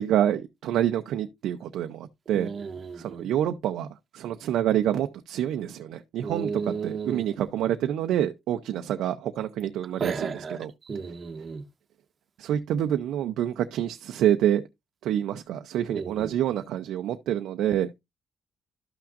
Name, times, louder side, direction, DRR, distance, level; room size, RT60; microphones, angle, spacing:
voice 1, 0.0-2.5 3.0-3.9 4.1-10.7 12.4-14.6 15.0-17.9, right 11 dB, 85° right, 0.6 m, -27 dB
voice 2, 2.3-3.3 6.2-7.2 10.0-10.6 10.9-11.6 15.9-16.4, right 5 dB, 40° right, 0.9 m, -33 dB
12.5 x 5.9 x 2.5 m
cardioid pair, 90°, 0 cm